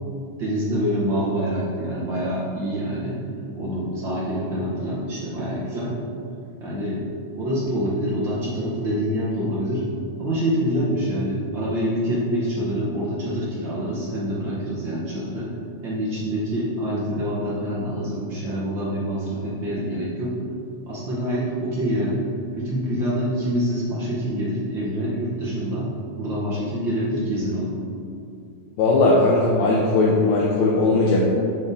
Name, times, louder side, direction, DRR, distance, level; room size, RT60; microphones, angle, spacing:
voice 1, 0.4-3.2 3.5-5.9 6.6-7.0 7.3-9.9 10.2-15.5 15.8-20.3 20.8-22.3 22.5-25.9 26.2-27.7, equal, 65° right, -7 dB, 1.1 m, -26 dB
voice 2, 28.8-31.2, left 2 dB, 75° left, -4 dB, 1.9 m, -18 dB
7.7 x 3.6 x 4.0 m, 2.5 s
omnidirectional pair, 3.5 m